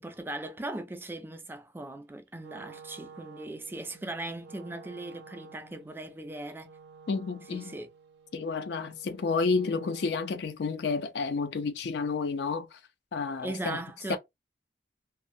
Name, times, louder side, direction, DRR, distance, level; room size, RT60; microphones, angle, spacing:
voice 1, 0.0-6.7 7.5-7.9 13.4-14.2, right 2 dB, 10° right, 0.3 m, -39 dB
Wind instrument woodwind instrument, 2.3-10.5, right 5 dB, 65° right, 0.5 m, -52 dB
voice 2, 7.1-7.8 8.3-12.8 13.1-13.8 14.1-14.2, left 4 dB, 65° left, 0.4 m, -30 dB
2.6 x 2.0 x 2.5 m
head